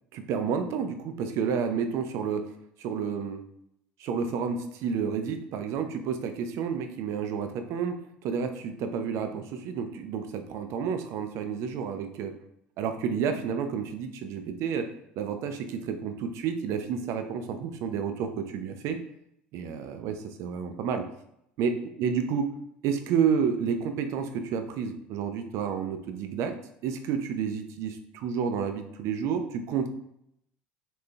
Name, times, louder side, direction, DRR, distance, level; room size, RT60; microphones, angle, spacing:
voice 1, 0.1-2.5 2.8-3.4 4.0-12.3 12.8-19.0 19.5-21.1 21.6-22.5 22.8-26.5 26.8-29.9, right 6 dB, 60° right, 7 dB, 0.4 m, -30 dB
3.6 x 2.5 x 2.2 m, 0.75 s
hypercardioid pair, 70°, 6 cm